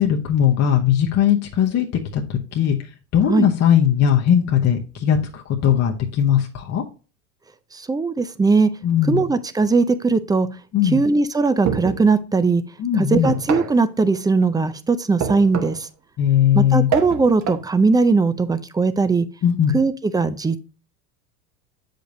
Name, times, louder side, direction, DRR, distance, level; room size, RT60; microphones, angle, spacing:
voice 1, 0.0-1.9 2.1-6.8 8.8-9.3 10.7-11.0 12.8-13.3 16.2-16.9 19.4-19.8, left 9 dB, 35° left, 1 dB, 1.0 m, -19 dB
voice 2, 7.7-8.7 9.1-10.5 10.8-12.6 13.0-15.9 16.5-19.3 19.7-20.8, right 4 dB, 10° right, 13 dB, 0.4 m, -19 dB
sound 1, 11.6-12.1 13.2-13.8 15.2-15.9 16.9-17.7, right 8 dB, 40° right, 1.1 m, -26 dB
7.7 x 5.2 x 2.7 m, 0.34 s
hypercardioid pair, 90°, 43 cm